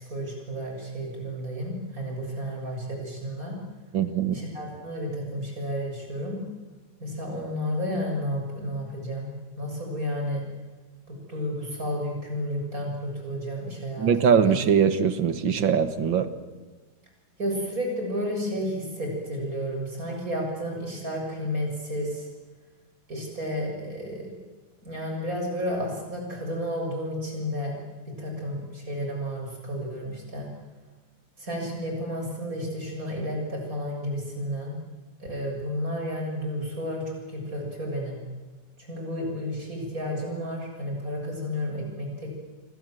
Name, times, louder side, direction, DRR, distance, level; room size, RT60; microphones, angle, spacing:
voice 1, 0.0-3.6 4.3-6.4 7.0-10.4 11.1-14.5 17.4-22.3 23.1-24.4 24.8-27.8 28.1-30.5 31.4-34.8 35.2-38.2 38.9-42.3, equal, 45° right, 1 dB, 7.7 m, -32 dB
voice 2, 3.9-4.4 14.0-16.3, right 7 dB, 85° right, 11 dB, 2.3 m, -22 dB
28.5 x 25.0 x 7.8 m, 1.3 s
omnidirectional pair, 2.0 m